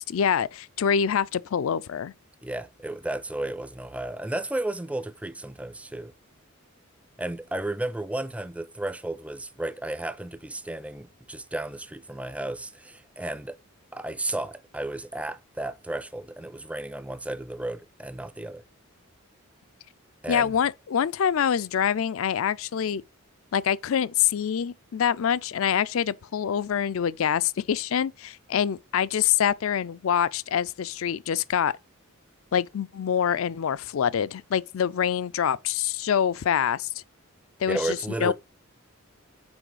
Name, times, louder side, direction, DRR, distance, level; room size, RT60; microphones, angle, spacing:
voice 1, 0.0-2.1 20.3-23.0 23.5-31.7 32.5-36.9 37.6-38.3, left 8 dB, 70° left, 0.4 m, -25 dB
voice 2, 2.4-6.1 7.2-13.6 13.9-18.6 20.2-20.6 37.7-38.3, right 1 dB, 5° right, 0.4 m, -33 dB
6.2 x 4.6 x 4.9 m
head